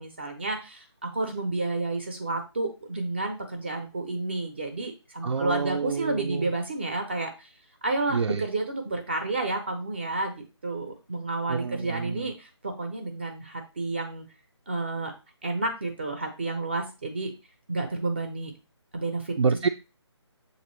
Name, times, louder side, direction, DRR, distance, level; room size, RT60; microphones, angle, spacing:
voice 1, 0.0-7.5 7.8-14.2 14.7-15.1 15.4-17.3 17.7-18.5 18.9-19.3, right 2 dB, 25° right, 0.5 m, -30 dB
voice 2, 5.2-6.5 8.1-8.5 11.5-12.3 19.4-19.7, right 5 dB, 80° right, 0.4 m, -28 dB
6.8 x 2.6 x 3.0 m
figure-of-eight pair, 165°, 15 cm